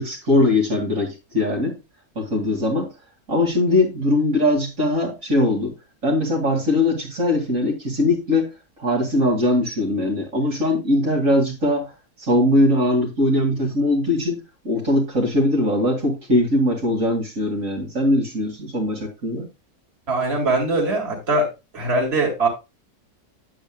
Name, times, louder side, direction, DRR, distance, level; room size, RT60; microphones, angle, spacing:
voice 1, 0.0-1.8 2.2-2.9 3.3-5.7 6.0-8.5 8.8-11.9 12.2-19.5, left 1 dB, 55° right, 2.7 m, -21 dB
voice 2, 20.1-21.5 21.7-22.5, right 2 dB, 40° right, 2.6 m, -21 dB
9.2 x 8.7 x 2.2 m
omnidirectional pair, 1.6 m